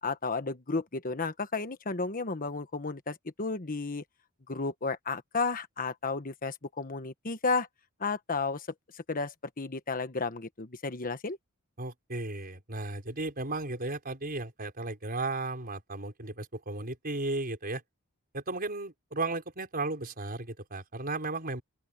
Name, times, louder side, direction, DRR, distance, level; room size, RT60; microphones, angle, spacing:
voice 1, 0.0-4.0 4.5-7.7 8.0-8.7 8.9-11.4, left 4 dB, 40° left, 1.3 m, -33 dB
voice 2, 11.8-17.8 18.3-21.6, right 2 dB, 45° right, 5.6 m, -35 dB
open air
head